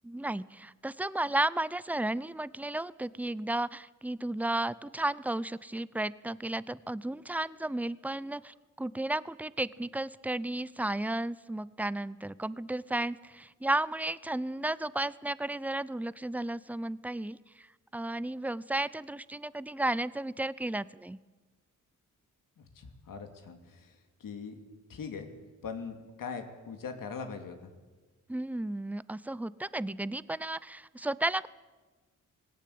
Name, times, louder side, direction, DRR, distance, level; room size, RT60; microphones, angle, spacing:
voice 1, 0.0-17.7 17.9-21.2 28.3-31.5, right 1 dB, 5° right, 19 dB, 0.6 m, -33 dB
voice 2, 22.6-24.6 24.9-25.3 25.6-27.7, left 5 dB, 85° left, 5 dB, 2.8 m, -41 dB
19.5 x 17.5 x 8.6 m, 1.3 s
cardioid pair, 90°, 32 cm